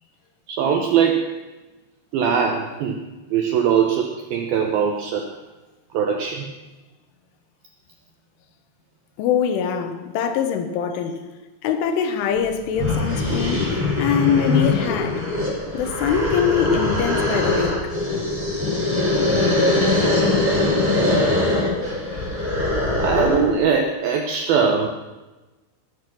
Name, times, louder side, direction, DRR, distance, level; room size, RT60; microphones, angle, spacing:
voice 1, 0.5-1.3 2.1-3.0 3.3-5.3 5.9-6.5 23.0-24.9, right 7 dB, 80° right, 2.1 m, -21 dB
voice 2, 9.2-11.2 11.6-15.2 15.7-17.9, left 7 dB, 85° left, 3.7 m, -23 dB
sound 1, 12.4-12.5 12.8-23.6, left 2 dB, 5° right, 5.3 m, -22 dB
20.0 x 8.6 x 6.0 m
omnidirectional pair, 5.5 m